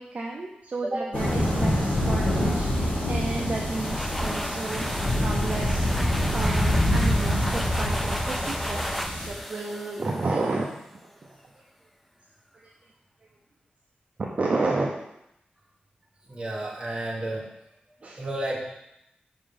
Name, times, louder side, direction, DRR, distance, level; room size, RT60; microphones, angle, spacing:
voice 1, 0.0-4.9 5.2-11.6 12.5-12.7 14.2-15.0 18.0-18.2, right 3 dB, 45° right, -1 dB, 0.6 m, -32 dB
sound 1, 1.1-9.3, left 1 dB, 45° left, 2.1 m, -25 dB
sound 2, 3.4-10.9, equal, ahead, 0.3 m, -34 dB
voice 2, 16.3-17.5 18.2-18.8, right 1 dB, 25° right, -3 dB, 1.3 m, -31 dB
5.1 x 3.8 x 5.1 m, 0.83 s
wide cardioid pair, 125°, 3 cm